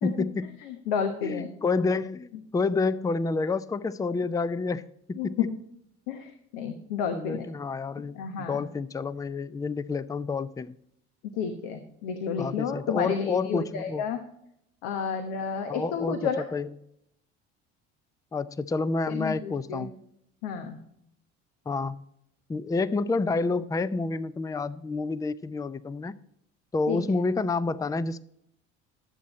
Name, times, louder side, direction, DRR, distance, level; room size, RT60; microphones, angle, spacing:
voice 1, 0.0-0.5 1.2-5.4 7.1-10.7 12.4-14.0 15.7-16.7 18.3-19.9 21.7-22.0 22.5-26.2 26.7-28.2, left 3 dB, 10° left, 0.4 m, -29 dB
voice 2, 0.7-1.5 5.2-5.5 6.1-7.5 8.1-8.7 11.3-14.2 14.8-16.4 19.1-19.8 20.4-20.8 26.9-27.0, left 7 dB, 75° left, 1.1 m, -31 dB
12.0 x 7.3 x 4.1 m
hypercardioid pair, 70°, 34 cm